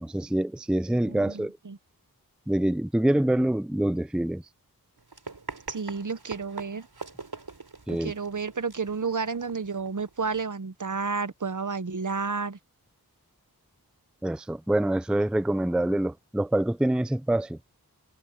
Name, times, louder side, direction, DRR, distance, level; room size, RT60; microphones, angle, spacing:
voice 1, 0.0-1.6 2.5-4.4 7.9-8.1 14.2-17.6, right 1 dB, ahead, 0.5 m, -25 dB
voice 2, 1.1-1.8 5.7-6.9 8.0-12.6, right 4 dB, 50° right, 1.0 m, -31 dB
Run, 5.0-10.4, right 3 dB, 75° right, 3.5 m, -43 dB
wide cardioid pair, 50°, 38 cm